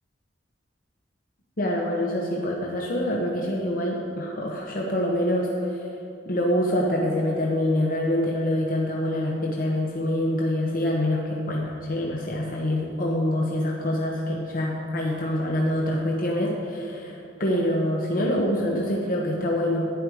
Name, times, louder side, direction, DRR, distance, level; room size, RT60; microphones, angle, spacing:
voice 1, 1.6-5.9 6.3-19.9, left 1 dB, 50° left, -2 dB, 1.1 m, -25 dB
11.5 x 9.9 x 4.8 m, 2.9 s
head